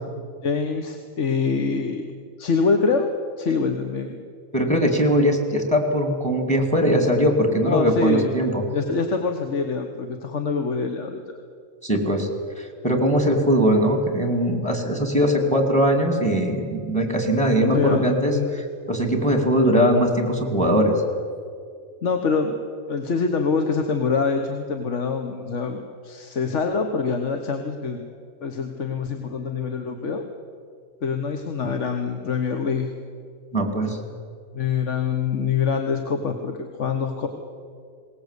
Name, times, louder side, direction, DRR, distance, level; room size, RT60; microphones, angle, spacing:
voice 1, 0.4-2.0 2.4-4.2 7.6-8.3 8.7-11.2 17.7-18.5 22.0-22.6 22.9-28.0 28.4-30.2 31.0-32.9 34.5-37.3, left 5 dB, 65° left, 5 dB, 1.5 m, -25 dB
voice 2, 4.5-8.6 11.8-12.3 12.6-20.9 33.5-34.0, equal, 5° left, 4 dB, 2.3 m, -21 dB
21.0 x 18.5 x 8.2 m, 2.2 s
omnidirectional pair, 1.3 m